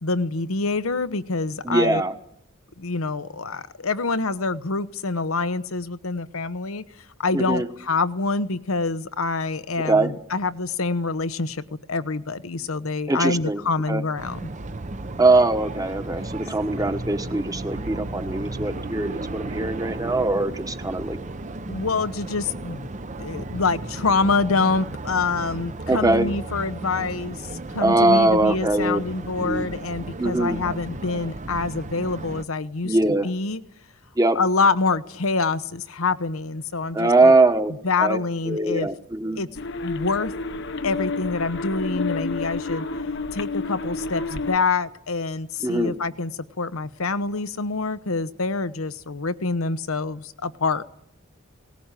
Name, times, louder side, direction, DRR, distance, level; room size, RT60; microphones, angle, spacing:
voice 1, 0.0-2.0 2.8-6.8 7.2-11.6 11.9-14.5 21.7-22.9 23.2-33.0 33.2-33.6 34.3-37.3 37.8-38.9 39.4-39.5 39.8-40.3 40.8-42.9 43.3-46.3 46.6-50.8, left 3 dB, 90° left, 1.0 m, -26 dB
voice 2, 1.6-2.1 7.3-7.7 9.8-10.1 13.1-13.6 13.9-14.0 15.2-21.2 25.9-26.3 27.8-29.0 29.4-29.7 30.2-30.6 32.8-33.3 34.2-34.4 36.9-37.7 38.0-38.2 38.5-39.4 45.6-45.9, right 2 dB, 15° right, 1.2 m, -21 dB
sound 1, 14.2-32.4, right 2 dB, 35° right, 0.8 m, -34 dB
sound 2, 39.5-44.6, left 3 dB, 60° left, 0.9 m, -30 dB
19.0 x 19.0 x 9.1 m
head